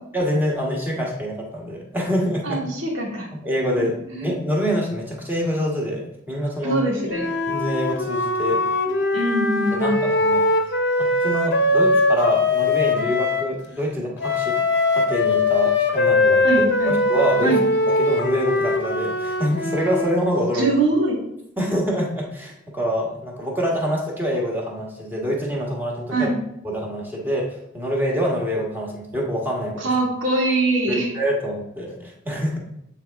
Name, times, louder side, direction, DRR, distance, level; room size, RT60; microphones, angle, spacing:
voice 1, 0.1-2.6 3.4-6.8 7.5-8.6 9.7-10.4 11.0-14.6 14.9-17.5 17.9-20.7 21.6-26.3 26.6-29.9 30.9-32.6, equal, 10° right, -2 dB, 1.4 m, -25 dB
voice 2, 2.4-3.3 3.8-4.3 6.6-7.3 9.1-10.0 16.4-17.0 17.4-17.6 20.5-21.2 26.1-26.4 29.8-31.1, right 2 dB, 80° right, -3 dB, 1.9 m, -23 dB
Wind instrument woodwind instrument, 7.1-13.5 14.2-20.2, left 2 dB, 60° left, 0.9 m, -21 dB
7.9 x 4.1 x 3.5 m, 0.77 s
head